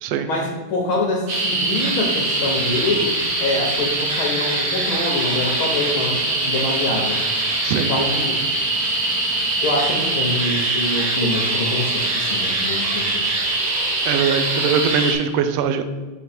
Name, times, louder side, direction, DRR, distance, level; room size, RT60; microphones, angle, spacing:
voice 1, 0.2-7.2 7.9-8.4 9.6-13.2, left 2 dB, 65° left, -1 dB, 1.4 m, -25 dB
sound 1, 1.3-15.1, right 2 dB, 55° right, 2.2 m, -22 dB
voice 2, 14.0-15.8, right 6 dB, 85° right, 8 dB, 1.4 m, -21 dB
6.6 x 5.1 x 4.2 m, 1.3 s
omnidirectional pair, 3.4 m